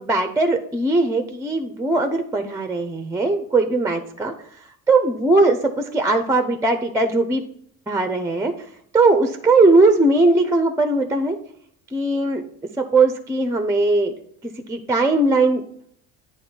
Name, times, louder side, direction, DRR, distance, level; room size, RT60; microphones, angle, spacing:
voice 1, 0.0-7.4 7.9-8.7 8.9-11.4 11.9-12.4 12.8-14.1 14.4-15.6, right 2 dB, 5° right, 7 dB, 0.6 m, -19 dB
9.3 x 3.2 x 4.4 m, 0.66 s
hypercardioid pair, 70°, 42 cm